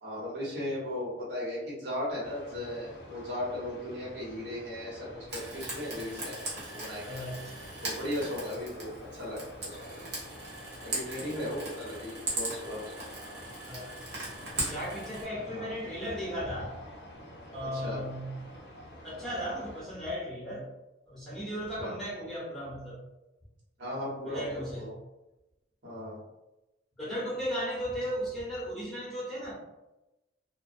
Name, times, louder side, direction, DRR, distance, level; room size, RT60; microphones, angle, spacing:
voice 1, 0.0-6.4 6.7-7.3 7.8-10.1 10.8-13.0 15.5-15.7 17.6-18.0 21.8-21.9 23.8-24.9 25.8-26.2, left 1 dB, 85° right, -7 dB, 1.1 m, -37 dB
sound 1, 2.2-19.8, equal, 65° left, 0.5 m, -48 dB
Frying (food), 5.3-15.2, right 2 dB, 65° right, 0.9 m, -39 dB
voice 2, 7.0-7.7 13.6-14.0 14.5-16.8 17.5-18.3 19.0-20.7 21.0-23.0 24.2-24.9 27.0-29.5, equal, ahead, -9 dB, 0.9 m, -36 dB
2.3 x 2.2 x 2.5 m, 0.99 s
head